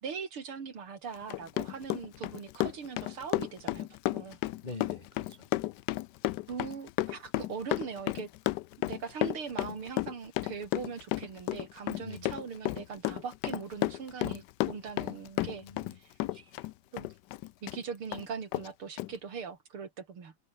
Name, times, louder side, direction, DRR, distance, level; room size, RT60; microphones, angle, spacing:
voice 1, 0.0-4.4 6.5-8.3 8.8-15.6 16.0-16.1 16.9-17.1 17.6-20.3, right 6 dB, 75° right, 3.7 m, -41 dB
Run, 1.1-17.8 18.1-18.2 18.5-18.7 19.0-19.1, left 16 dB, 80° left, 0.9 m, -32 dB
voice 2, 4.6-5.5 12.0-12.4 15.6-16.0 16.3-16.7, left 3 dB, 25° left, 1.4 m, -45 dB
omnidirectional pair, 2.4 m